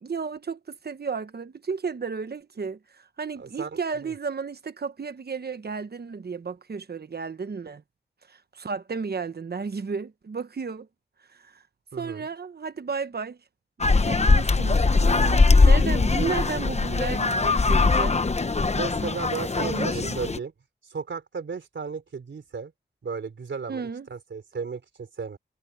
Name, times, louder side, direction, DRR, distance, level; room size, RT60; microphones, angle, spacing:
voice 1, 0.0-7.8 8.3-10.9 11.3-11.6 12.0-13.4 13.8-18.2 19.6-20.2 23.7-24.1, right 5 dB, 60° right, 1.1 m, -33 dB
voice 2, 3.4-4.1 11.9-12.3 18.7-20.5 20.9-22.7 23.0-25.4, right 5 dB, 90° right, 3.9 m, -35 dB
sound 1, 13.8-20.4, left 3 dB, 35° left, 0.9 m, -21 dB
wide cardioid pair, 85°, 19 cm